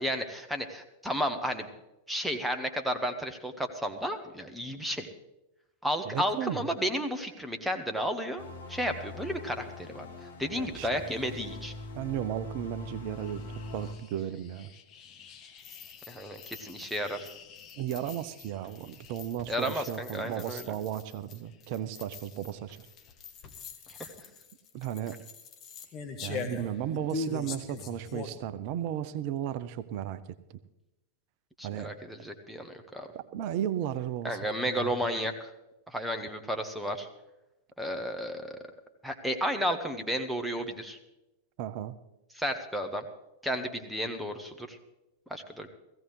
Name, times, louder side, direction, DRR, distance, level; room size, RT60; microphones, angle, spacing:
voice 1, 0.0-1.7 2.1-5.1 5.8-8.4 8.7-11.7 16.1-17.3 19.5-20.7 23.9-24.1 31.6-33.1 34.2-35.5 35.9-37.1 37.8-38.6 39.0-41.0 42.3-43.0 43.4-44.8 45.3-45.7, equal, 5° right, 6 dB, 1.3 m, -33 dB
voice 2, 6.0-6.7 10.5-10.9 11.9-14.7 17.8-22.8 24.7-25.2 26.2-30.2 31.6-31.9 33.3-34.4 34.7-34.9 41.6-41.9, right 11 dB, 45° right, 14 dB, 0.7 m, -35 dB
sound 1, 8.4-13.9, left 2 dB, 70° left, 1.9 m, -43 dB
sound 2, 13.0-28.4, left 5 dB, 35° left, 1.3 m, -43 dB
17.0 x 15.5 x 3.2 m, 0.95 s
figure-of-eight pair, 90°, 0 cm